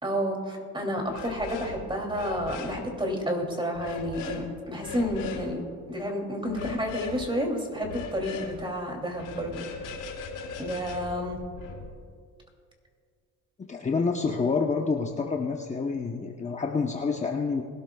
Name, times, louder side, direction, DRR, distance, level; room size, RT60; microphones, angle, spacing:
voice 1, 0.0-5.6 5.9-9.6 10.6-11.4, equal, 15° right, 2 dB, 2.8 m, -30 dB
sound 1, 1.1-1.8 2.0-2.8 3.8-4.4 4.8-5.4 6.5-7.2 7.8-8.5 9.1-11.8, left 4 dB, 90° left, 3.9 m, -38 dB
voice 2, 13.7-17.6, left 4 dB, 20° left, 1 dB, 0.9 m, -28 dB
21.5 x 12.5 x 2.3 m, 2.1 s
cardioid pair, 105°, 32 cm